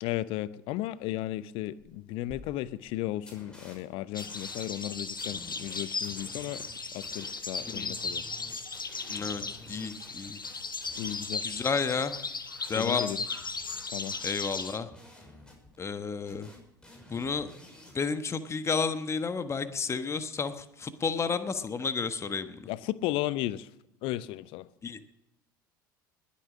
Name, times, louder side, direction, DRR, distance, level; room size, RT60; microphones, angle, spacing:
voice 1, 0.0-6.6 6.9-8.2 11.0-11.5 12.8-13.2 13.9-14.2 22.7-23.7 24.0-24.7, left 15 dB, 55° left, 18 dB, 0.7 m, -34 dB
sound 1, 1.8-1.9 2.3-2.4 2.8-2.9 3.2-3.8 4.2-12.3 12.6-12.7 13.4-16.0 16.3-17.9, left 1 dB, 10° left, 6.1 m, -52 dB
sound 2, 4.1-14.8, left 4 dB, 85° left, 0.8 m, -37 dB
voice 2, 9.1-10.4 11.4-12.2 12.7-13.0 14.2-14.9 15.8-16.5 17.1-17.5 17.9-22.7 24.8-25.0, left 5 dB, 25° left, 10 dB, 1.2 m, -31 dB
20.5 x 8.6 x 6.3 m, 0.85 s
figure-of-eight pair, 65°, 11 cm